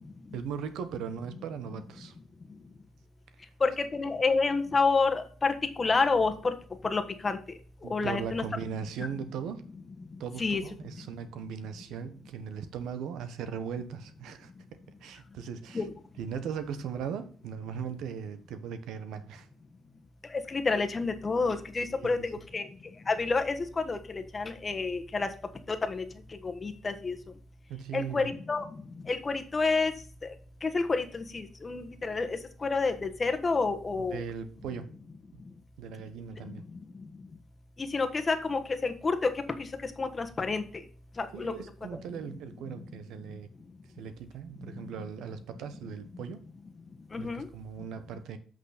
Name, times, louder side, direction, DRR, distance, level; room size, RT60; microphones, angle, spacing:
voice 1, 0.3-2.1 7.8-9.7 10.2-15.9 16.2-19.5 21.9-22.3 27.7-28.3 34.1-34.9 35.8-36.6 41.3-43.5 44.0-46.4 47.2-48.4, right 7 dB, 85° right, 1.0 m, -38 dB
voice 2, 3.6-6.5 6.8-7.4 7.9-8.5 10.4-10.6 15.7-15.9 20.5-22.7 23.1-25.3 25.7-26.0 26.4-27.1 27.9-28.6 29.1-29.9 30.6-34.2 37.8-39.3 40.0-40.6 41.2-41.5 47.1-47.5, left 4 dB, 30° left, 1.2 m, -29 dB
8.3 x 6.1 x 4.1 m
cardioid pair, 90°, 0 cm